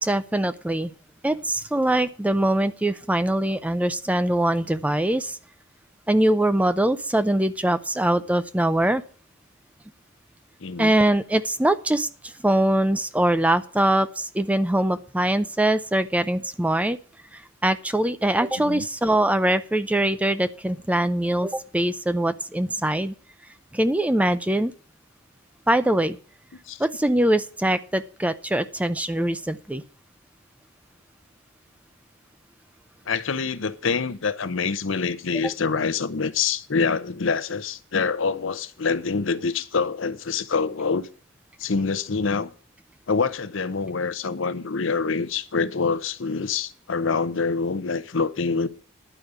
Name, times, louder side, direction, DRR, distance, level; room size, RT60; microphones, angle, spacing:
voice 1, 0.0-0.9 1.2-5.4 6.1-9.0 10.8-17.0 17.3-23.1 23.7-24.7 25.7-26.2 26.8-29.8, right 1 dB, 5° right, 0.5 m, -23 dB
voice 2, 10.6-10.9 18.5-18.8 26.7-26.8 33.1-41.1 41.6-42.5 43.1-48.7, left 5 dB, 70° left, 0.7 m, -26 dB
11.0 x 5.1 x 8.1 m
head